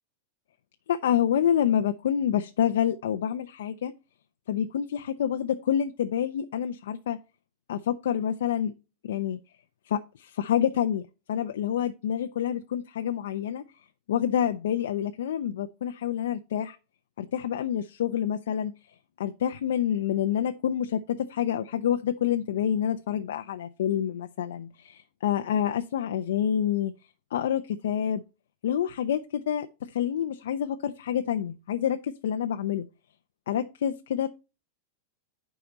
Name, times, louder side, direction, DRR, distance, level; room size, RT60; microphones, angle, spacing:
voice 1, 0.9-3.9 4.5-7.2 7.7-8.7 9.0-9.4 9.9-11.0 11.3-13.6 14.1-16.8 17.2-18.7 19.2-26.9 27.3-28.2 28.6-32.9 33.5-34.3, left 9 dB, 90° left, 0.7 m, -27 dB
11.0 x 5.0 x 3.9 m
supercardioid pair, 170°, 0 cm